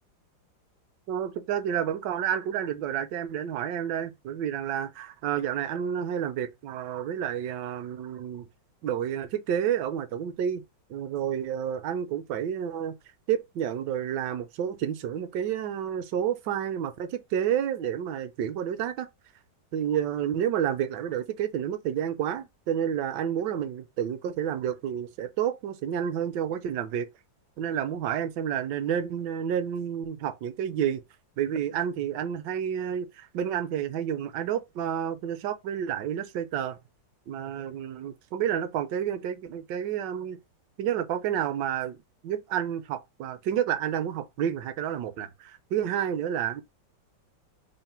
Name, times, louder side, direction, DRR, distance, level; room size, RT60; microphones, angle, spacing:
voice 1, 1.1-8.4 8.8-10.6 10.9-12.9 13.3-19.1 19.7-27.1 27.6-31.0 31.4-36.8 37.3-40.4 40.8-46.6, right 9 dB, 75° right, 1.1 m, -30 dB
3.7 x 2.1 x 4.2 m
omnidirectional pair, 2.1 m